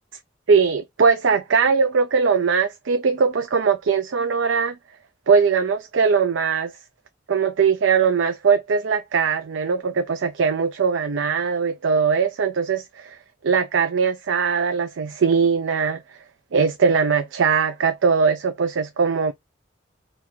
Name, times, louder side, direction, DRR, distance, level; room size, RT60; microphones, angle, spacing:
voice 1, 0.5-4.8 5.3-6.7 7.3-13.2 13.4-16.0 16.5-19.3, right 5 dB, 85° right, 0.5 m, -20 dB
3.7 x 2.5 x 4.4 m
head